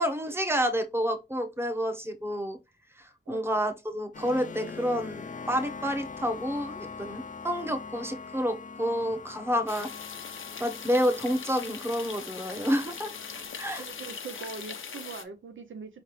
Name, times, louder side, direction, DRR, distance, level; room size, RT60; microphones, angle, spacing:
voice 1, 0.0-2.6 3.0-9.9 10.6-13.8, equal, 10° right, 0.9 m, -29 dB
sound 1, 4.1-14.2, left 5 dB, 40° left, 0.5 m, -43 dB
sound 2, 9.7-15.2, left 6 dB, 85° left, 0.6 m, -41 dB
voice 2, 13.8-16.0, right 5 dB, 80° right, 0.6 m, -42 dB
4.8 x 3.2 x 3.0 m
wide cardioid pair, 75°, 20 cm